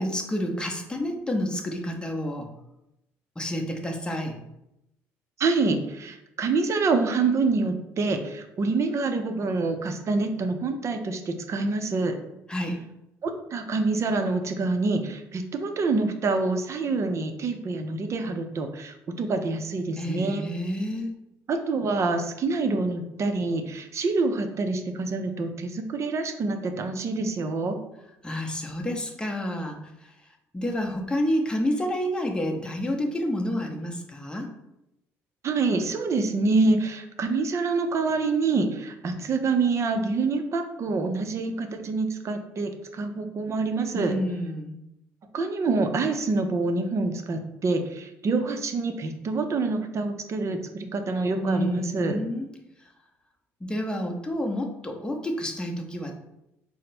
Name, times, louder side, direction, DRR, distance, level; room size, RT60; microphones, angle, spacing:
voice 1, 0.0-2.5 3.4-4.4 12.5-12.8 20.0-21.2 28.2-30.1 30.5-34.5 43.9-44.7 51.4-52.5 53.6-56.1, equal, 15° left, 1 dB, 0.8 m, -29 dB
voice 2, 5.4-12.2 13.2-20.5 21.5-27.8 35.4-44.1 45.3-52.2, right 3 dB, 45° right, 6 dB, 0.6 m, -26 dB
4.2 x 2.1 x 4.2 m, 0.87 s
supercardioid pair, 70°, 7 cm